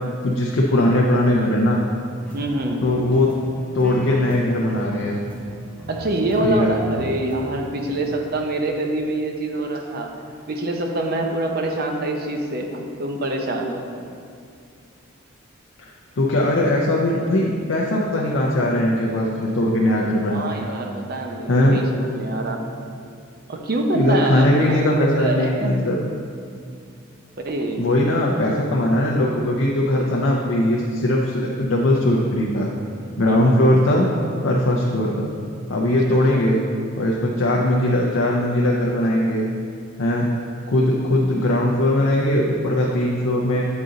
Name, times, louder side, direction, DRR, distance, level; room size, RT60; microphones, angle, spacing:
voice 1, 0.2-1.8 2.8-3.3 3.7-5.1 6.4-6.7 15.8-20.6 21.5-21.8 23.9-26.0 27.8-32.7 33.2-34.1 34.4-35.3 35.7-36.6 37.0-39.4 40.0-40.3 40.7-43.7, left 1 dB, 60° left, -3 dB, 0.5 m, -20 dB
sound 1, 2.2-7.4 7.8-8.2, equal, 5° left, 0.6 m, -38 dB
voice 2, 2.3-2.8 5.9-10.2 10.5-13.8 20.0-22.6 23.5-25.7 27.4-27.8 33.3-33.5 36.3-36.4, right 2 dB, 45° right, 3 dB, 0.6 m, -25 dB
8.1 x 3.9 x 3.8 m, 2.3 s
head